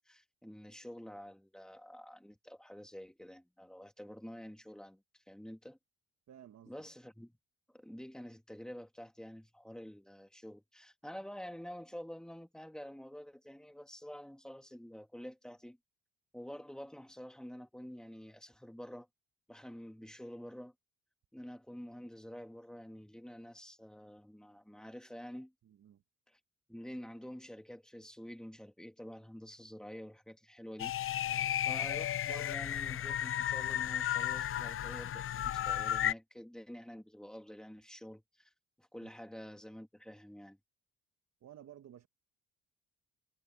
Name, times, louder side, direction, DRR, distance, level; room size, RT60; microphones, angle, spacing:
voice 1, 0.0-5.8 6.7-7.4 7.7-15.8 16.3-19.1 19.5-20.7 21.3-25.5 26.3-26.4 26.7-30.9 31.7-38.5 38.8-40.6, equal, ahead, 2.3 m, -48 dB
voice 2, 6.3-6.7 25.6-26.0 31.2-31.6 39.0-39.1 41.4-42.1, right 10 dB, 60° right, 1.4 m, -55 dB
sound 1, 30.8-36.1, left 11 dB, 45° left, 0.5 m, -34 dB
cardioid pair, 90°, 30 cm